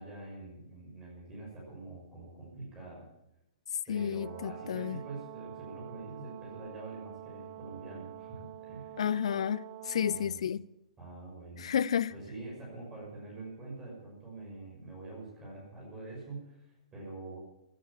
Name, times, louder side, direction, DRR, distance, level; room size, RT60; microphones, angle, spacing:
voice 1, 0.0-3.1 3.9-9.0 10.1-10.4 11.0-11.7 12.1-17.4, right 2 dB, 20° right, 6.4 m, -45 dB
voice 2, 3.9-5.0 9.0-9.6 9.9-10.6 11.6-12.1, left 8 dB, 60° left, 0.5 m, -31 dB
Brass instrument, 3.9-10.3, right 14 dB, 45° right, 1.0 m, -47 dB
16.0 x 10.5 x 7.2 m
figure-of-eight pair, 115°, 4 cm